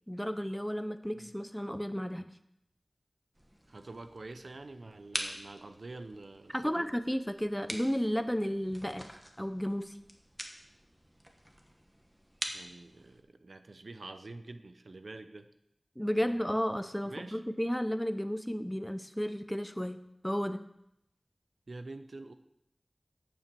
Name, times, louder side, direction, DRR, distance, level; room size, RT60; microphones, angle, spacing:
voice 1, 0.1-2.3 6.5-9.1 9.4-9.9 16.0-20.0 20.2-20.6, equal, 5° left, 10 dB, 0.7 m, -33 dB
sound 1, 3.3-13.2, equal, 15° right, 1.5 m, -45 dB
voice 2, 3.7-6.9 12.5-15.5 16.2-16.5 17.1-17.4 21.7-22.3, right 2 dB, 75° right, 9 dB, 0.7 m, -47 dB
8.8 x 7.0 x 6.9 m, 0.79 s
wide cardioid pair, 55°, 0 cm